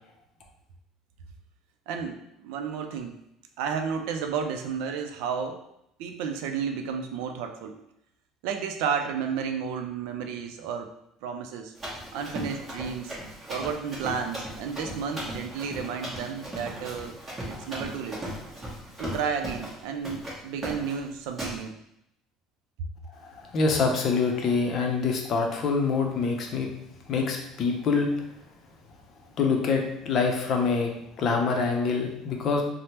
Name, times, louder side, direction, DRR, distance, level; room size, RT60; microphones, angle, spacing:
voice 1, 1.9-3.1 3.6-5.7 6.0-7.8 8.4-10.9 11.2-11.7 12.1-13.2 13.5-17.2 17.5-18.2 19.0-21.8, right 6 dB, 80° right, 5 dB, 0.4 m, -32 dB
Run, 11.8-19.8 20.0-20.4 20.6-21.0 21.4-21.6, right 1 dB, 20° right, 1.1 m, -37 dB
voice 2, 23.2-26.7 27.1-28.1 29.4-30.9 31.2-32.6, left 4 dB, 45° left, 2 dB, 0.5 m, -25 dB
3.3 x 2.0 x 2.8 m, 0.80 s
cardioid pair, 130°, 0 cm